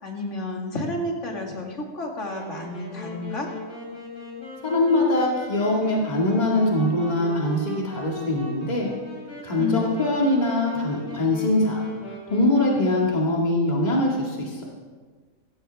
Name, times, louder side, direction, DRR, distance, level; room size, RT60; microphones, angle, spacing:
voice 1, 0.0-3.5 9.6-9.9, left 2 dB, 60° left, 1 dB, 2.4 m, -30 dB
Wind instrument woodwind instrument, 2.2-13.2, equal, 80° left, 3.7 m, -39 dB
voice 2, 4.6-8.9 9.4-11.8 12.3-14.6, left 1 dB, 30° left, -3 dB, 2.2 m, -22 dB
16.0 x 15.0 x 3.5 m, 1.5 s
omnidirectional pair, 1.4 m